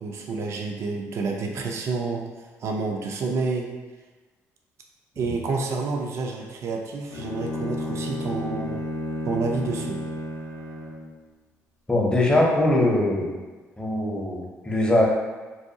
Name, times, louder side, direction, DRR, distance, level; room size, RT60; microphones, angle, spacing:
voice 1, 0.0-2.2 2.6-3.7 5.2-8.8 9.2-10.0, right 4 dB, 55° right, 2 dB, 0.3 m, -29 dB
Bowed string instrument, 7.1-11.2, left 1 dB, 85° left, 0.4 m, -32 dB
voice 2, 11.9-13.4 13.8-14.4 14.6-15.1, left 1 dB, 15° left, -2 dB, 0.6 m, -21 dB
2.6 x 2.2 x 2.6 m, 1.3 s
cardioid pair, 85°, 6 cm